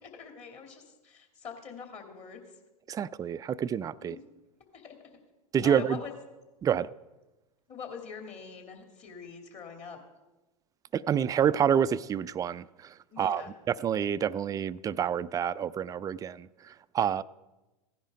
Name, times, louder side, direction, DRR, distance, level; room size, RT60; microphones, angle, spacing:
voice 1, 0.0-2.6 4.0-4.2 4.7-5.0 5.6-6.1 7.7-10.0 13.1-13.5, left 6 dB, 35° left, 2.9 m, -43 dB
voice 2, 2.9-4.2 5.5-6.0 6.6-6.9 10.9-13.4 13.8-17.2, right 8 dB, 20° right, 0.3 m, -28 dB
16.0 x 10.5 x 5.1 m
hypercardioid pair, 95°, 19 cm